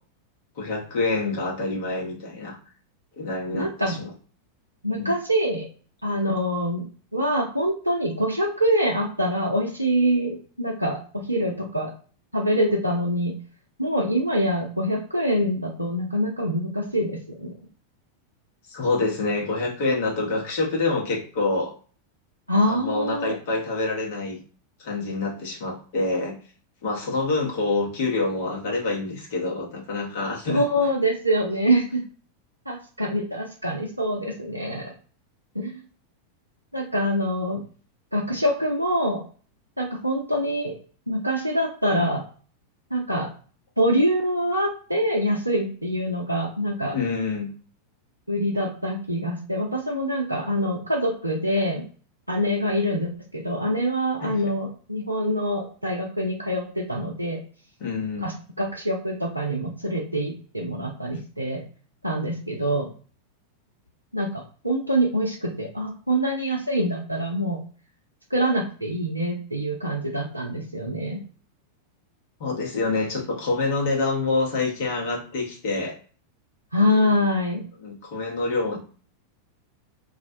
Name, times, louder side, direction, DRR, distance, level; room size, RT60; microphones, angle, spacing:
voice 1, 0.6-2.6 3.2-4.1 4.9-5.1 18.7-21.7 22.7-24.4 24.8-26.3 26.8-30.7 46.9-47.5 54.2-54.5 57.8-58.3 72.4-75.9 77.8-78.8, left 3 dB, 50° left, -2 dB, 0.9 m, -26 dB
voice 2, 3.5-4.0 4.8-5.6 6.0-6.9 7.1-11.0 11.3-11.9 12.3-13.4 13.8-17.5 22.5-23.3 30.5-32.0 32.7-34.9 35.5-35.7 36.7-37.6 38.1-39.2 39.8-40.7 41.1-42.2 42.9-43.3 43.8-47.0 48.3-51.8 52.3-57.4 58.2-61.6 62.0-62.9 64.1-67.6 68.3-71.2 76.7-77.6, equal, 85° right, -2 dB, 0.4 m, -25 dB
2.4 x 2.1 x 2.5 m, 0.41 s
figure-of-eight pair, 90°, 0 cm